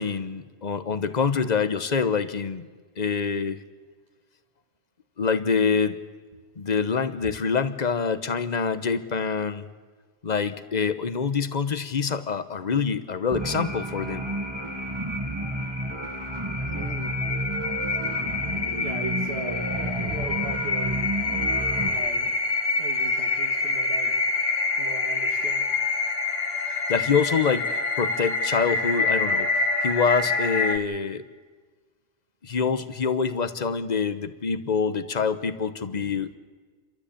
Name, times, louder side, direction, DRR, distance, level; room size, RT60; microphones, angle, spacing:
voice 1, 0.0-2.6 3.0-3.6 5.2-6.0 6.6-9.7 10.2-14.3 26.7-31.2 32.4-36.4, left 5 dB, 40° left, 11 dB, 1.1 m, -26 dB
sound 1, 13.3-21.9, right 2 dB, 20° right, 1.9 m, -31 dB
sound 2, 13.4-30.8, left 3 dB, 65° left, 1.8 m, -27 dB
voice 2, 16.7-17.2 18.8-21.1 21.9-22.4 22.8-24.2 24.7-25.8, right 4 dB, 75° right, 1 dB, 1.9 m, -38 dB
29.5 x 13.0 x 8.6 m, 1.5 s
omnidirectional pair, 1.1 m